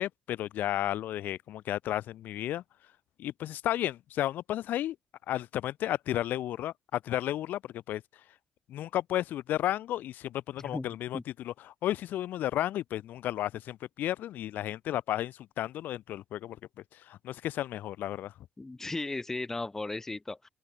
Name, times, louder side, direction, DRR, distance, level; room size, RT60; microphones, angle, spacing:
voice 1, 0.0-2.6 3.2-5.0 5.3-8.0 8.7-16.6 17.1-18.3, left 13 dB, 85° left, 5.5 m, -33 dB
voice 2, 10.6-11.2 18.6-20.5, left 2 dB, 15° left, 2.1 m, -36 dB
open air
cardioid pair, 150°, 3 cm